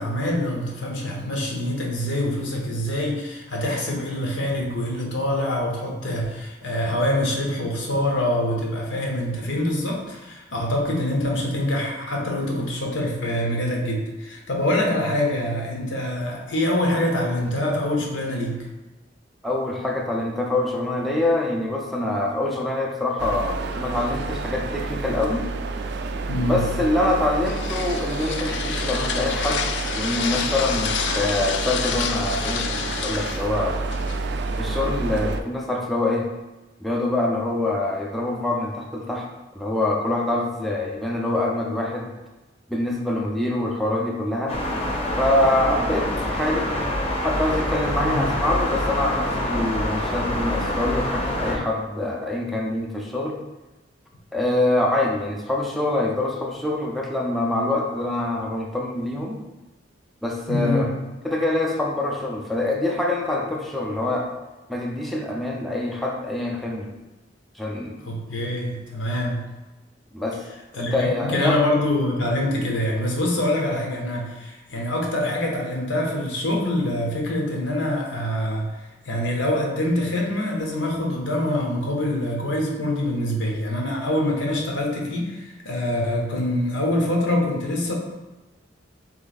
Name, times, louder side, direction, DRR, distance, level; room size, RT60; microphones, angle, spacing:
voice 1, 0.0-18.7 26.3-26.7 48.0-48.3 60.5-60.8 68.0-69.5 70.7-78.7 79.0-87.9, left 1 dB, 85° left, 0 dB, 0.9 m, -25 dB
voice 2, 19.4-25.5 26.4-29.6 29.9-33.8 34.6-36.3 36.8-39.3 39.5-42.1 42.7-44.5 45.2-46.7 47.2-53.4 54.3-59.4 60.2-60.9 61.2-64.3 64.7-66.9 67.5-68.0 70.1-70.4 70.7-71.6, left 2 dB, ahead, -2 dB, 0.5 m, -25 dB
sound 1, 23.2-35.4, right 3 dB, 65° right, 0.3 m, -29 dB
sound 2, 27.1-34.6, left 7 dB, 70° left, 0.3 m, -29 dB
sound 3, 44.5-51.6, left 1 dB, 35° left, 0.7 m, -26 dB
3.5 x 3.1 x 4.0 m, 1.1 s
head